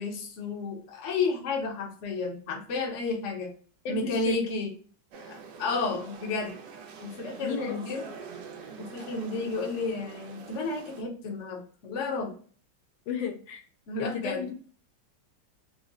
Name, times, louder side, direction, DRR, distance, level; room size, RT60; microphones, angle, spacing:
voice 1, 0.0-3.5 3.9-4.7 5.3-6.5 7.0-8.0 8.8-12.3 13.9-14.4, left 3 dB, 50° left, 2 dB, 1.0 m, -32 dB
voice 2, 3.8-4.4 7.4-7.9 13.1-13.6 14.0-14.5, left 7 dB, 85° left, 3 dB, 1.5 m, -33 dB
sound 1, 5.1-11.0, right 5 dB, 75° right, 1.2 m, -45 dB
3.9 x 2.1 x 3.6 m, 0.43 s
omnidirectional pair, 2.0 m